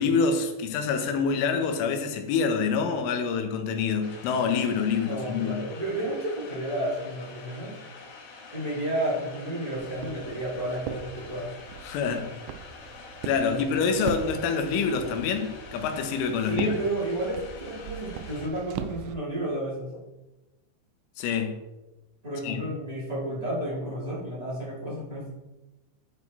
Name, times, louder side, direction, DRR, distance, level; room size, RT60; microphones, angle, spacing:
voice 1, 0.0-5.7 11.8-12.3 13.2-16.8 21.2-21.6 22.4-22.6, left 5 dB, 85° left, 3.5 m, -26 dB
sound 1, 4.0-18.5, left 4 dB, 65° left, 1.9 m, -46 dB
voice 2, 5.0-7.8 8.5-11.5 13.5-13.8 16.4-20.0 22.2-25.3, right 1 dB, 65° right, 0.4 m, -31 dB
Walk footsteps, 9.8-19.1, right 9 dB, 90° right, 3.1 m, -40 dB
12.0 x 4.7 x 4.1 m
omnidirectional pair, 5.5 m